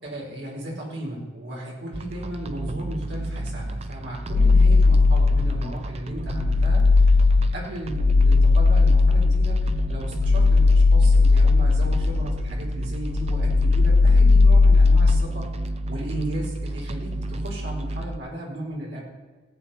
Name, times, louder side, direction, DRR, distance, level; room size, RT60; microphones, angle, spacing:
voice 1, 0.0-7.2 7.5-15.5 15.9-19.0, right 1 dB, 65° right, -3 dB, 4.4 m, -35 dB
sound 1, 1.9-18.2, right 1 dB, 35° right, 0.6 m, -31 dB
sound 2, 4.3-5.8 6.2-12.7 13.0-15.3, left 3 dB, 80° left, 0.4 m, -17 dB
18.0 x 8.2 x 4.3 m, 1.4 s
head